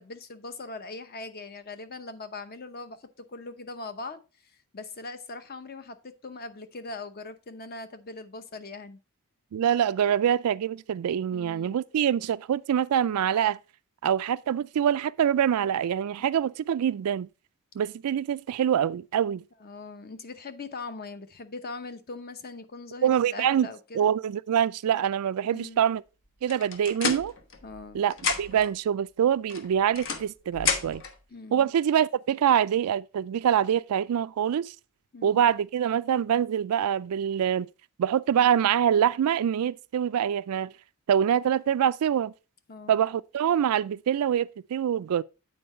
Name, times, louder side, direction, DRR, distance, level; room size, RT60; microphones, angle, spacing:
voice 1, 0.0-9.0 11.3-11.8 16.2-16.3 19.6-24.1 25.4-25.9 27.6-28.0 31.3-31.7 35.1-35.4 42.7-43.0, left 3 dB, 45° left, 0.8 m, -41 dB
voice 2, 9.5-13.6 14.0-17.3 17.8-19.4 23.0-23.7 23.9-26.0 26.4-27.3 27.9-31.0 31.5-34.7 35.2-37.7 38.0-40.7 41.1-42.3 42.9-45.2, right 9 dB, 85° right, 0.3 m, -25 dB
sound 1, 26.5-27.9 28.1-28.7 29.5-31.2, left 5 dB, 60° left, 1.1 m, -31 dB
8.6 x 4.5 x 4.3 m
head